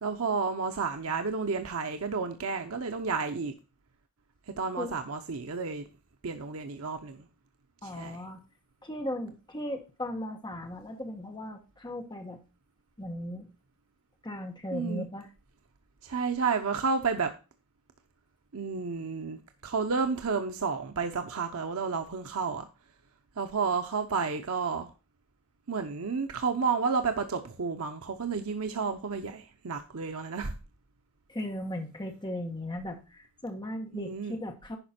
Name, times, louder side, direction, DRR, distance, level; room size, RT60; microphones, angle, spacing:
voice 1, 0.0-3.5 4.6-5.9 6.2-7.2 7.8-8.2 14.7-15.0 16.0-17.3 18.5-19.4 19.6-22.7 23.4-24.9 25.7-30.6 33.9-34.3, right 5 dB, 75° right, 0.8 m, -31 dB
voice 2, 7.8-8.4 8.8-12.4 13.0-13.5 14.2-15.3 31.3-34.8, left 1 dB, 20° left, 1.3 m, -37 dB
11.0 x 5.1 x 4.3 m
head